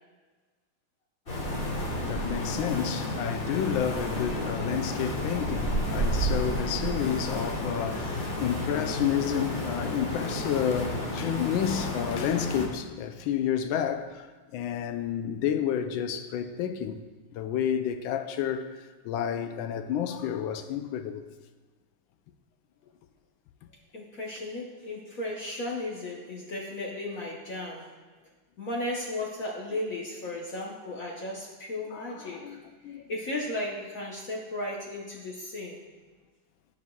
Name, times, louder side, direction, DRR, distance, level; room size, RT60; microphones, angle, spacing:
sound 1, 1.3-12.7, equal, 30° left, 1.3 m, -31 dB
voice 1, 1.5-17.0 17.3-21.3 31.9-33.1, left 9 dB, 75° left, 1.2 m, -30 dB
voice 2, 23.9-27.9 28.6-32.6 33.1-35.8, left 1 dB, 55° left, 1.0 m, -35 dB
15.0 x 5.4 x 2.3 m
omnidirectional pair, 2.3 m